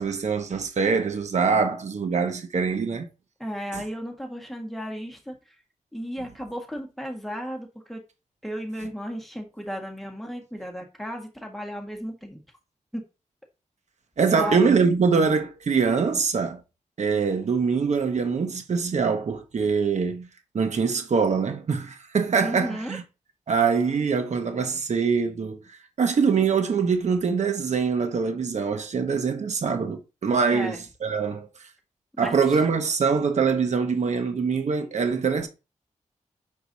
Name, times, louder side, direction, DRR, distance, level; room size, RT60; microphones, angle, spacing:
voice 1, 0.0-3.1 3.7-3.8 14.2-16.6 17.0-20.3 20.5-23.0 23.5-31.7 32.2-35.5, right 5 dB, 60° right, 1.1 m, -24 dB
voice 2, 3.4-5.3 5.9-8.0 8.4-12.4 12.9-13.0 14.3-14.7 22.4-23.0 30.5-30.8 32.1-32.3, equal, ahead, 1.7 m, -34 dB
6.7 x 4.6 x 4.1 m
wide cardioid pair, 175°, 13 cm